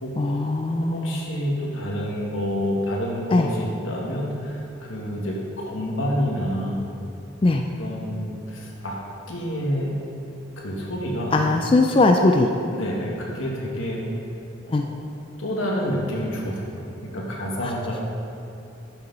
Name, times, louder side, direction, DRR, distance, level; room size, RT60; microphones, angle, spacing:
voice 1, 0.2-1.2 3.3-3.5 7.4-7.6 11.3-12.5 14.7-14.9 17.6-17.7, left 2 dB, 25° left, 4 dB, 0.3 m, -20 dB
voice 2, 0.9-5.3 5.6-6.8 7.8-9.0 9.3-9.9 10.6-11.4 12.7-14.0 14.7-14.9 15.4-18.0, equal, 80° left, -3 dB, 1.8 m, -28 dB
11.5 x 6.9 x 4.0 m, 2.7 s
head